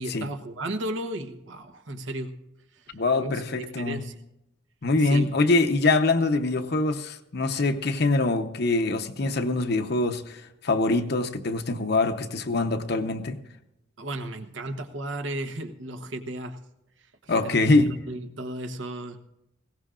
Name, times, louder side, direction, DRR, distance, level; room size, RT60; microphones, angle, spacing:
voice 1, 0.0-2.3 2.7-4.2 5.0-5.3 14.0-16.6 17.0-19.2, right 1 dB, 85° right, 1.1 m, -35 dB
voice 2, 2.9-4.0 4.8-13.4 17.3-17.9, left 2 dB, 60° left, 0.9 m, -24 dB
20.0 x 17.0 x 2.5 m
head